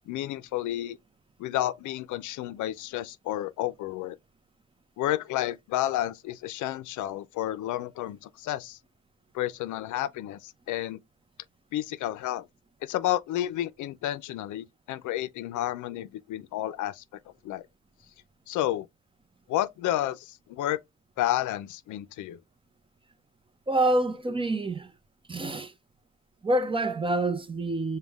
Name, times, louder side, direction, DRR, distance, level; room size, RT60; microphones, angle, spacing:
voice 1, 0.1-1.0 1.4-4.2 5.0-8.8 9.3-11.0 11.7-12.4 12.8-17.0 17.4-17.7 18.5-18.9 19.5-20.8 21.2-22.4, left 13 dB, 80° left, 0.5 m, -31 dB
voice 2, 23.7-24.9 25.3-25.7 26.4-28.0, right 1 dB, 15° right, 0.6 m, -27 dB
5.2 x 2.2 x 3.4 m
cardioid pair, 90°, 30 cm